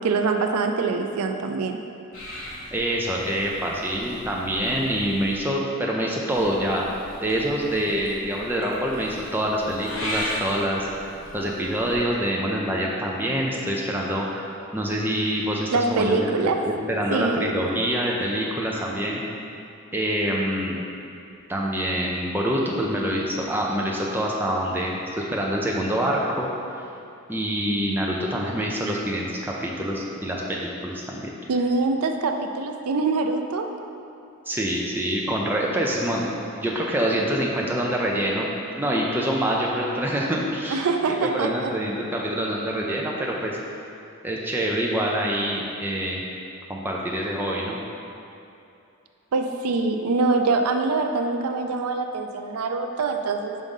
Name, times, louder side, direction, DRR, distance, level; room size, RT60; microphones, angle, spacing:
voice 1, 0.0-1.8 15.7-16.6 17.1-17.5 31.5-33.7 40.7-41.7 49.3-53.6, right 3 dB, 85° right, 5 dB, 0.4 m, -24 dB
Purr / Meow, 2.1-5.4 6.3-12.0, left 1 dB, 70° left, 1.4 m, -38 dB
voice 2, 2.7-6.9 7.2-10.9 11.3-14.4 14.7-16.3 16.6-19.2 19.9-20.8 21.5-26.5 27.3-31.3 34.5-38.5 38.8-43.6 44.2-46.2 46.7-47.8, equal, 10° right, -3 dB, 0.5 m, -26 dB
5.2 x 3.6 x 5.4 m, 2.7 s
head